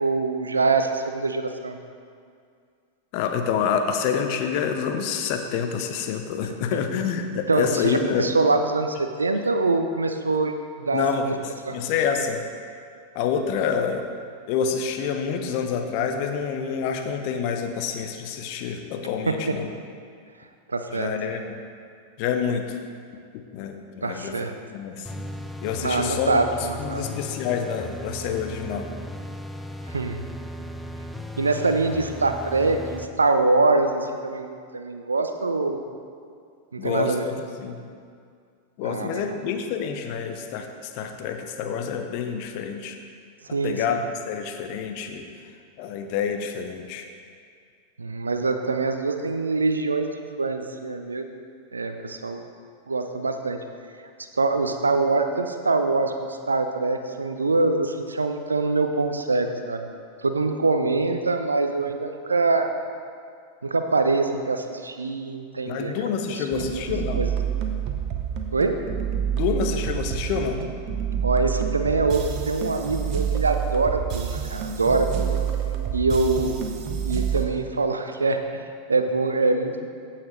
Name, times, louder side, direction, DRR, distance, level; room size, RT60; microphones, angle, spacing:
voice 1, 0.0-1.8 7.5-10.5 10.8-11.4 11.7-11.8 19.3-19.4 20.7-21.1 24.0-24.5 25.8-27.0 29.9-30.2 31.4-35.8 36.7-37.2 38.8-39.2 43.5-44.0 48.0-50.1 50.4-51.3 51.7-52.4 52.9-53.6 54.3-59.9 60.2-62.7 63.6-65.9 66.3-66.8 67.2-67.3 68.5-68.8 71.2-75.4 75.9-76.6 77.0-78.4 78.9-79.9, right 3 dB, 75° right, 6 dB, 0.6 m, -24 dB
voice 2, 3.1-8.3 10.9-12.4 13.1-14.0 14.5-19.7 20.9-21.6 22.2-22.8 23.3-24.3 24.7-25.1 25.6-26.4 26.8-28.9 36.8-37.1 37.6-37.8 38.8-43.0 43.6-44.0 44.3-45.3 45.8-47.1 65.6-67.2 69.3-70.6, left 7 dB, 45° left, 5 dB, 0.8 m, -27 dB
sound 1, 25.1-33.1, equal, 5° left, 0.4 m, -36 dB
sound 2, 66.5-77.5, right 9 dB, 40° right, 0.8 m, -28 dB
15.0 x 5.8 x 3.2 m, 2.2 s
figure-of-eight pair, 90°, 0 cm